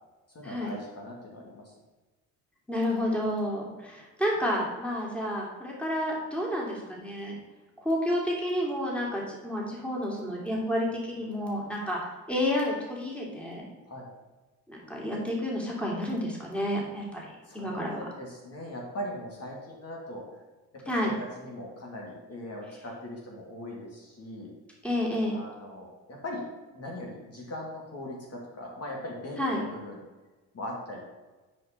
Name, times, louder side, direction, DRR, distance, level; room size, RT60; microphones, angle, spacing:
voice 1, 0.3-1.7 13.9-14.1 17.5-20.3 21.0-24.5 25.2-26.4 26.7-30.0 30.5-31.0, left 1 dB, 45° left, -2 dB, 2.5 m, -40 dB
voice 2, 2.7-7.3 7.8-12.0 12.3-13.6 14.7-17.2 17.5-18.0 20.8-21.1 24.8-25.4 29.4-29.6, left 1 dB, 5° left, -3 dB, 2.9 m, -30 dB
9.4 x 5.2 x 4.4 m, 1.2 s
cardioid pair, 80°, 34 cm